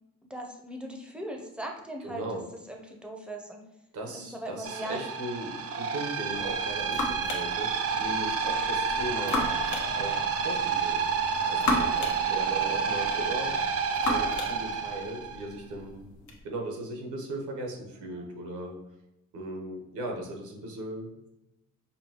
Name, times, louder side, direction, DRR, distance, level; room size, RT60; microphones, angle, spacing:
voice 1, 0.3-2.2 2.7-3.6 4.1-5.0, right 1 dB, 5° right, 2 dB, 0.6 m, -39 dB
voice 2, 2.0-2.4 3.9-9.6 9.9-11.1 11.5-13.7 14.0-16.0 16.4-18.8 19.3-21.3, right 1 dB, 80° right, 1 dB, 1.0 m, -37 dB
sound 1, 4.7-15.4, right 5 dB, 55° right, 0.5 m, -29 dB
sound 2, 6.3-16.4, left 3 dB, 75° left, 1.0 m, -36 dB
5.4 x 2.2 x 2.9 m, 0.88 s
cardioid pair, 90°, 30 cm